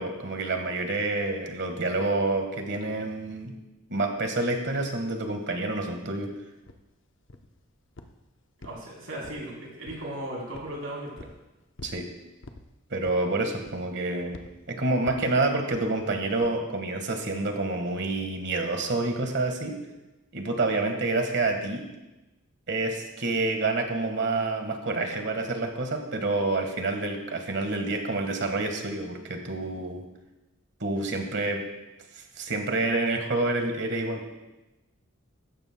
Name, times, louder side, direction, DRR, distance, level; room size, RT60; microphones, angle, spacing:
voice 1, 0.0-3.5 3.9-6.3 11.8-12.1 12.9-14.4 14.7-19.7 20.3-21.8 22.7-30.0 30.8-31.6 32.4-34.2, right 2 dB, 55° right, 4 dB, 1.5 m, -28 dB
sound 1, 6.7-6.8 7.3-7.6 8.0-8.2 8.6-9.5 9.9-10.1 10.5-10.8 11.2-11.4 11.8-12.0 12.4-12.7 13.0-13.3 13.7-14.0 14.3-14.5 15.1-15.3 15.7-15.9 16.4-16.6, left 2 dB, 60° left, 0.8 m, -46 dB
voice 2, 8.6-11.1, right 1 dB, 80° right, -3 dB, 3.7 m, -36 dB
15.0 x 13.5 x 2.2 m, 1.0 s
head